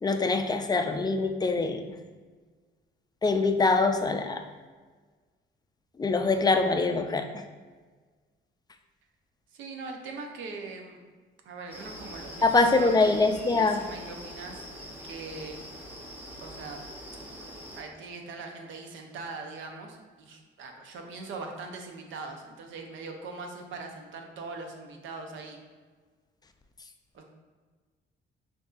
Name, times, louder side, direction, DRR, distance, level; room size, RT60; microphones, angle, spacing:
voice 1, 0.0-1.8 3.2-4.4 6.0-7.3 12.4-13.9, left 3 dB, 20° left, 7 dB, 0.3 m, -24 dB
voice 2, 9.5-11.0 11.4-13.1 13.6-14.6 15.0-15.6 16.4-16.8 17.8-25.6 27.1-27.2, right 3 dB, 75° right, 3 dB, 0.7 m, -41 dB
sound 1, 11.7-17.8, equal, 10° right, 0.8 m, -43 dB
6.3 x 2.6 x 2.4 m, 1.4 s
cardioid pair, 90°, 20 cm